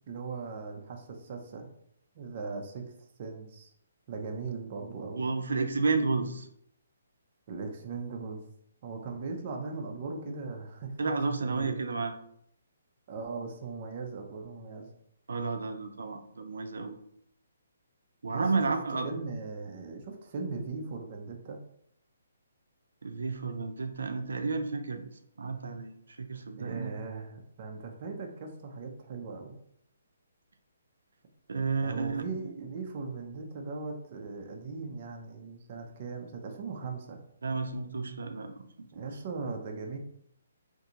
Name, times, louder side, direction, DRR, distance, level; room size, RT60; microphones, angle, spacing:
voice 1, 0.1-1.7 2.2-2.8 3.2-3.7 4.1-5.3 7.5-8.4 8.8-10.9 11.4-11.9 13.1-14.9 18.3-21.6 26.6-29.5 31.8-37.2 38.9-40.0, right 4 dB, 30° right, 2 dB, 0.4 m, -39 dB
voice 2, 5.2-6.5 11.0-12.1 15.3-17.0 18.2-19.1 23.0-25.0 25.4-26.9 31.5-32.5 37.4-38.6, right 4 dB, 85° right, 6 dB, 0.4 m, -31 dB
3.7 x 2.6 x 2.8 m, 0.70 s
hypercardioid pair, 175°, 0 cm